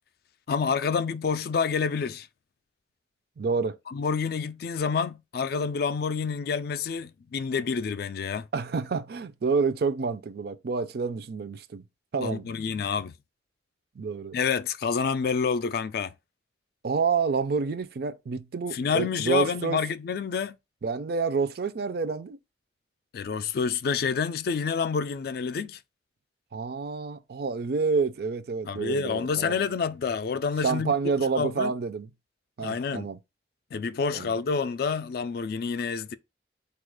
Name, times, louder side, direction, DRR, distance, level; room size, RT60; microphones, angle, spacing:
voice 1, 0.5-2.3 3.9-8.5 12.2-13.1 14.3-16.1 18.7-20.6 23.1-25.8 28.7-30.9 31.4-31.7 32.6-33.1 33.7-36.1, left 5 dB, 55° left, 0.3 m, -28 dB
voice 2, 3.4-3.8 8.5-11.8 12.1-12.5 14.0-14.3 16.8-19.8 20.8-22.4 26.5-29.6 30.6-32.1 32.6-33.2 34.1-34.3, right 5 dB, 55° right, 0.4 m, -28 dB
4.3 x 2.4 x 4.7 m
head